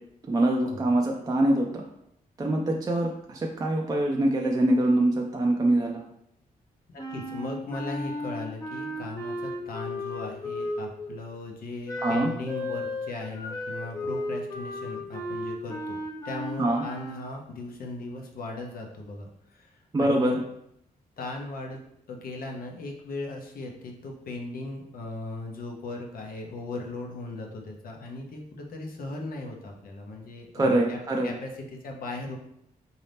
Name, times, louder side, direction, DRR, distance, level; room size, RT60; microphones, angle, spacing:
voice 1, 0.3-1.8 2.4-6.0 12.0-12.3 16.6-16.9 19.9-20.4 30.5-31.3, right 1 dB, 25° right, 0 dB, 0.4 m, -24 dB
voice 2, 6.9-16.0 16.2-20.4 21.2-21.8 22.1-32.4, left 2 dB, 70° left, 1 dB, 0.8 m, -38 dB
Wind instrument woodwind instrument, 7.0-11.1 11.8-17.3, left 1 dB, 20° left, 0.6 m, -34 dB
3.9 x 2.8 x 3.4 m, 0.76 s
cardioid pair, 95°, 15 cm